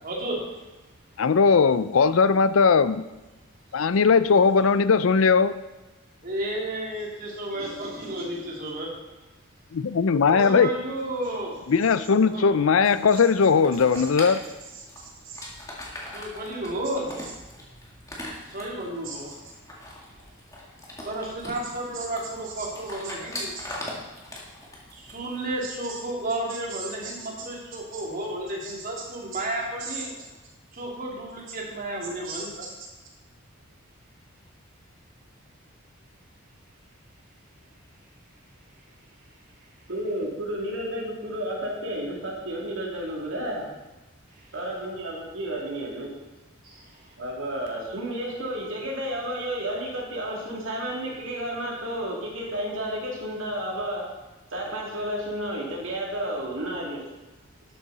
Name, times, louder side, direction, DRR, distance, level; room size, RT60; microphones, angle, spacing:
voice 1, 0.0-0.4 6.2-8.9 10.3-11.6 12.2-12.6 16.1-17.2 18.4-19.4 21.0-23.5 24.9-30.1 30.7-32.6 46.6-47.1, right 1 dB, 45° right, -2 dB, 2.7 m, -32 dB
voice 2, 1.2-3.0 3.7-5.5 9.7-10.7 11.7-14.4, left 5 dB, 80° left, 14 dB, 0.5 m, -19 dB
sound 1, 12.8-25.6, left 1 dB, 15° left, 2.1 m, -41 dB
voice 3, 14.7-15.4 19.0-19.2 22.6-22.7 23.5-23.6 25.6-26.0 26.5-27.1 27.9-28.0 28.6-28.8 29.3-29.4 29.8-30.0 32.2-32.7 39.9-43.7 44.5-46.1 47.2-54.0 54.5-57.0, right 1 dB, 70° right, -2 dB, 2.9 m, -32 dB
11.5 x 8.6 x 4.2 m, 1.1 s
head